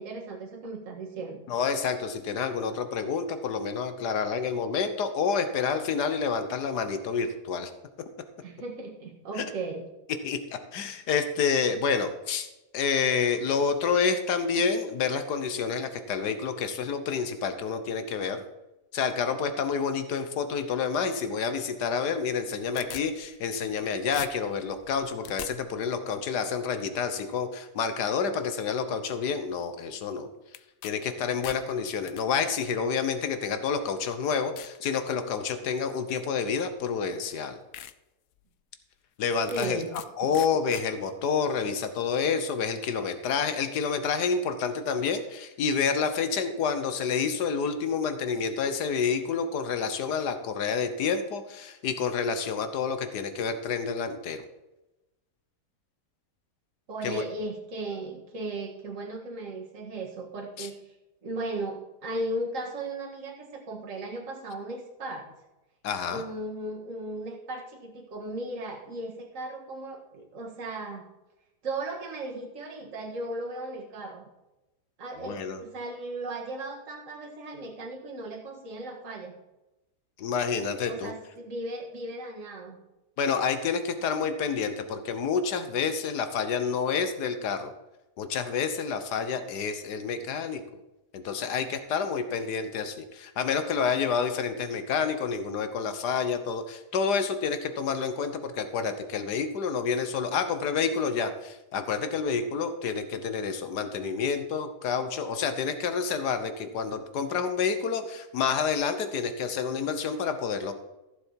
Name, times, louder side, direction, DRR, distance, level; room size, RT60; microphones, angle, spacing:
voice 1, 0.0-1.4 8.4-9.8 39.5-39.9 56.9-60.8 61.2-65.3 66.1-71.0 71.6-74.3 75.0-79.3 80.9-82.8, right 2 dB, 55° right, 0 dB, 2.1 m, -36 dB
voice 2, 1.5-7.7 9.4-9.5 10.2-10.4 10.7-12.5 12.7-18.4 18.9-30.3 30.8-37.6 39.2-39.8 40.2-54.4 57.0-57.2 60.6-60.7 65.8-66.2 75.2-75.6 80.2-81.1 83.2-87.7 88.2-90.6 91.1-110.7, left 6 dB, 90° left, 9 dB, 1.6 m, -28 dB
sound 1, 22.3-23.8 24.1-25.5 30.5-30.9 31.2-32.2 33.1-33.2 33.8-33.9 34.6-34.8 35.3-35.6 36.8-36.9 37.3-37.4 37.7-37.9 38.4-38.5 39.5-40.1 40.3-40.8, left 12 dB, 70° left, 1.0 m, -42 dB
15.0 x 6.9 x 4.6 m, 0.99 s
omnidirectional pair, 1.7 m